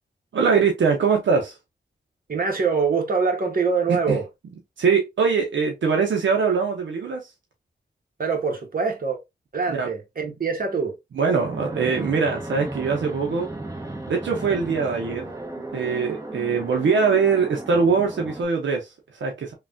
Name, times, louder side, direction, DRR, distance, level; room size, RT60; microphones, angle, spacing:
voice 1, 0.3-1.6 3.9-4.2 4.8-7.3 9.7-9.9 11.2-13.5 14.1-15.3 15.7-19.5, right 5 dB, 80° right, 0.6 m, -22 dB
voice 2, 2.3-4.3 8.2-9.2 9.5-10.9, right 5 dB, 50° right, 1.0 m, -24 dB
Fixed-wing aircraft airplane, 11.4-18.5, right 2 dB, 15° right, 1.0 m, -35 dB
3.1 x 2.3 x 2.5 m
cardioid pair, 55°, 19 cm